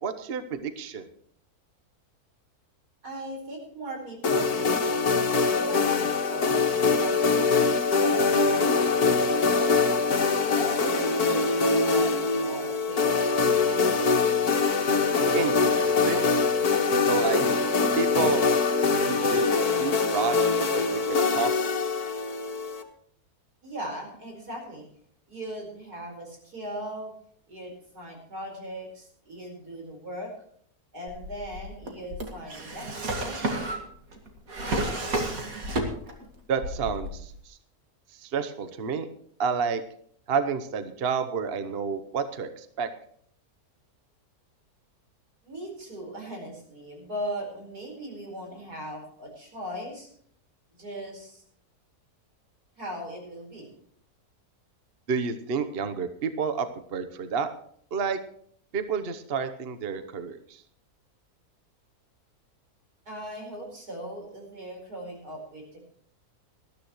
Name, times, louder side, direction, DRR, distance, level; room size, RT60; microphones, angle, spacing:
voice 1, 0.0-1.0 15.3-16.3 17.1-17.4 18.0-18.4 19.0-21.5 36.5-37.6 38.2-39.1 39.4-39.8 40.3-42.9 55.1-57.5 57.9-58.2 58.7-60.6, right 5 dB, 45° right, 9 dB, 1.1 m, -30 dB
voice 2, 3.0-9.9 10.4-14.0 23.6-24.9 25.3-27.1 27.5-30.3 30.9-33.6 45.4-50.1 50.7-51.4 52.8-53.7 63.1-65.9, equal, 90° right, 1 dB, 5.3 m, -39 dB
sound 1, 4.2-22.8, left 4 dB, 75° left, 1.9 m, -23 dB
Drawer open or close, 31.1-36.3 36.6-37.4, right 1 dB, 65° right, 2.6 m, -31 dB
19.5 x 13.5 x 3.1 m, 0.62 s
omnidirectional pair, 1.6 m